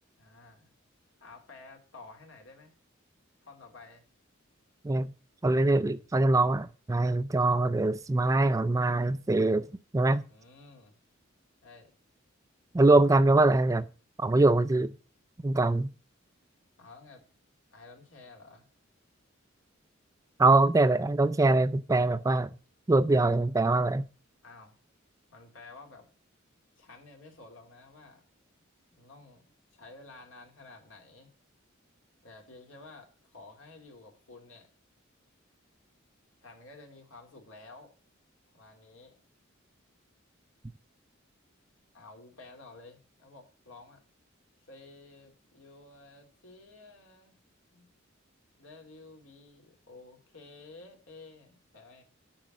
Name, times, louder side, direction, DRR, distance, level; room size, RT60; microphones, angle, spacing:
voice 1, 0.2-0.7 1.2-2.7 3.4-4.0 10.3-11.0 11.6-11.9 16.8-17.2 17.7-18.7 24.4-24.8 25.3-26.1 26.8-28.2 28.9-29.4 29.7-31.3 32.2-34.7 36.4-37.9 38.5-39.2 41.9-44.0 44.6-47.4 47.7-47.9 48.6-52.0, left 3 dB, 75° left, 2.8 m, -52 dB
voice 2, 5.4-9.7 9.9-10.2 12.7-13.9 14.2-14.9 15.4-15.9 20.4-22.5 22.9-24.0, right 2 dB, 15° right, 0.3 m, -23 dB
8.9 x 4.7 x 7.4 m
head